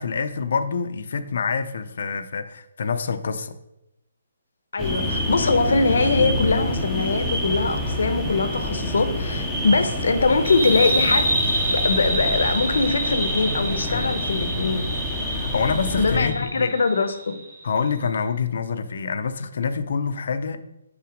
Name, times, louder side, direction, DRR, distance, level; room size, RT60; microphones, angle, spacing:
voice 1, 0.0-3.5 13.9-14.1 15.3-16.7 17.6-20.6, left 5 dB, 50° left, 10 dB, 0.5 m, -26 dB
voice 2, 4.7-11.3 11.7-14.9 16.0-17.4, left 3 dB, 75° left, 9 dB, 0.8 m, -22 dB
sound 1, 4.8-16.3, left 1 dB, ahead, 0.6 m, -27 dB
sound 2, 10.4-17.6, right 1 dB, 70° right, 2.2 m, -27 dB
5.8 x 4.0 x 5.1 m, 0.87 s
hypercardioid pair, 175°, 0 cm